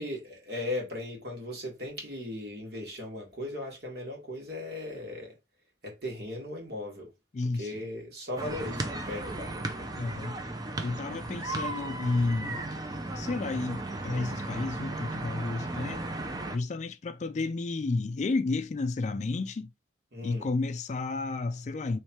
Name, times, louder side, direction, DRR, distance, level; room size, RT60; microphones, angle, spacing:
voice 1, 0.0-5.3 5.8-7.1 7.5-9.9 20.1-20.5, left 1 dB, 60° right, 1.8 m, -37 dB
voice 2, 7.3-7.8 10.0-10.4 10.8-12.6 13.1-16.1 16.5-19.7 20.2-22.0, left 3 dB, 40° left, 0.3 m, -31 dB
sound 1, 8.4-16.6, right 2 dB, 20° right, 0.5 m, -35 dB
3.2 x 3.2 x 4.3 m
head